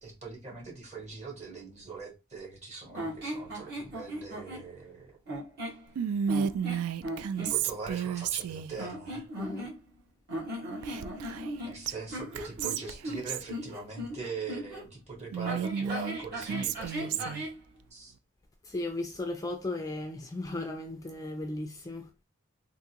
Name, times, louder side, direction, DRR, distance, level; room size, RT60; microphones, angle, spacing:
voice 1, 0.0-5.2 7.4-9.3 11.6-17.4 17.9-18.1, right 4 dB, 30° right, 1.4 m, -42 dB
sound 1, 2.9-4.7 5.3-5.8 6.3-7.6 8.7-10.0 10.3-14.8 15.4-17.6, right 1 dB, 50° right, 1.5 m, -38 dB
Whispering, 6.0-8.8 10.8-11.6 11.9-12.0 12.3-13.5 15.3-17.5, right 8 dB, 90° right, 0.3 m, -32 dB
voice 2, 9.4-9.7 18.6-22.1, left 2 dB, 15° left, 0.3 m, -36 dB
3.5 x 2.5 x 2.8 m
head